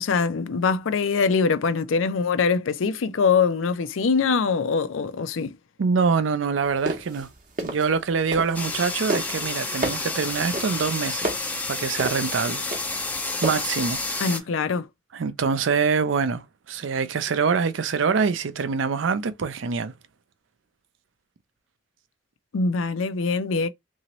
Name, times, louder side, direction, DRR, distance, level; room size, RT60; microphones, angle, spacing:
voice 1, 0.0-5.5 14.2-14.9 22.5-23.7, left 5 dB, 90° left, 0.5 m, -23 dB
voice 2, 5.8-7.3 7.6-11.3 11.7-12.6 13.4-14.3 15.1-19.9, right 5 dB, 80° right, 0.4 m, -25 dB
sound 1, 6.7-8.8 9.1-13.7, right 1 dB, 40° right, 0.7 m, -31 dB
sound 2, 8.5-14.4, left 3 dB, 10° left, 0.3 m, -30 dB
2.9 x 2.7 x 2.9 m
head